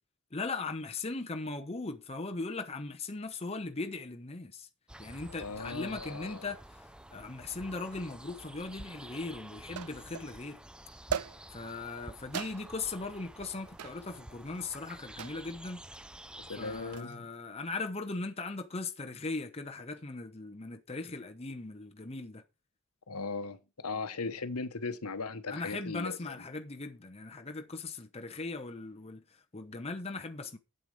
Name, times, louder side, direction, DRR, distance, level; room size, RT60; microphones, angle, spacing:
voice 1, 0.3-4.7 5.0-6.6 7.1-10.6 11.5-15.8 16.6-22.4 25.5-29.2 29.5-30.6, left 3 dB, 25° left, 0.9 m, -39 dB
sound 1, 4.9-17.0, right 1 dB, 5° right, 0.4 m, -50 dB
voice 2, 5.3-6.5 16.5-17.3 23.1-26.3, left 4 dB, 85° left, 1.1 m, -38 dB
sound 2, 8.6-8.7 9.8-10.3 11.1-11.7 12.3-12.9 13.8-14.1 15.2-15.5 16.7-17.1, right 7 dB, 80° right, 0.5 m, -38 dB
7.9 x 7.9 x 5.2 m
head